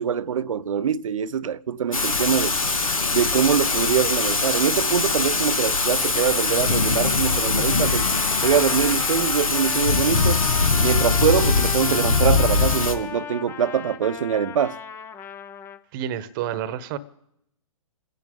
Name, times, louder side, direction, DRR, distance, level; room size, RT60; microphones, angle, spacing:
voice 1, 0.0-2.6 3.1-8.1 8.4-10.4 10.8-14.8, right 8 dB, 70° right, 0.6 m, -23 dB
Thunder / Rain, 1.9-12.9, left 4 dB, 90° left, 1.5 m, -22 dB
Trumpet, 7.3-15.8, left 7 dB, 15° left, 0.5 m, -36 dB
voice 2, 15.9-17.0, right 10 dB, 40° right, 1.0 m, -29 dB
28.5 x 10.5 x 3.7 m
hypercardioid pair, 130°, 17 cm